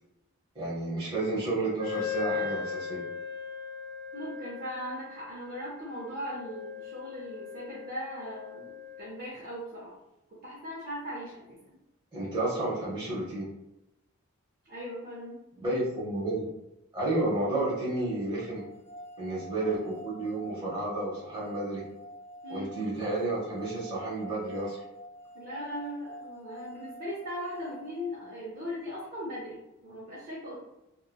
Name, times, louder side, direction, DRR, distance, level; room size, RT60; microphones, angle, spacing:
voice 1, 0.5-3.0 12.1-13.5 15.6-16.5 16.9-18.6 19.2-21.8 22.5-24.8, right 2 dB, 20° right, -7 dB, 0.9 m, -31 dB
Wind instrument woodwind instrument, 1.8-9.1, left 7 dB, 50° left, 1.0 m, -38 dB
voice 2, 4.1-9.9 10.3-11.8 14.7-15.4 22.4-22.7 25.3-30.6, equal, 45° right, -6 dB, 0.5 m, -39 dB
sound 1, 18.5-28.7, equal, 15° left, 0.7 m, -47 dB
2.7 x 2.1 x 2.2 m, 0.93 s
head